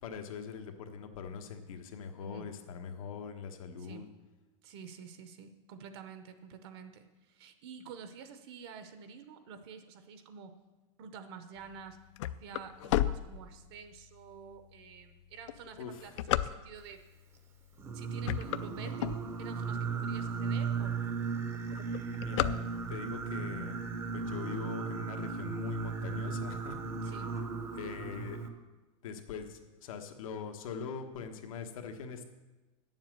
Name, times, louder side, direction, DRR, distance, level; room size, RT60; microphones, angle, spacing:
voice 1, 0.0-4.1 15.8-16.2 22.2-22.6 22.9-23.8 24.1-27.4 27.7-28.5 29.0-32.2, left 6 dB, 90° left, 5 dB, 1.3 m, -42 dB
voice 2, 2.2-2.5 3.8-4.0 4.6-10.6 11.0-12.0 12.3-17.0 17.9-21.1 27.0-27.4, right 6 dB, 50° right, 9 dB, 0.7 m, -49 dB
sound 1, 11.7-14.0 14.6-14.7 15.3-17.0 17.7-17.9 18.2-19.7 20.2-20.3 20.5-20.6 20.9-21.3 21.5-23.2, left 13 dB, 60° left, 0.4 m, -33 dB
Singing, 17.8-28.5, right 5 dB, 15° right, 0.6 m, -36 dB
9.2 x 7.4 x 7.5 m, 1.1 s
supercardioid pair, 175°, 17 cm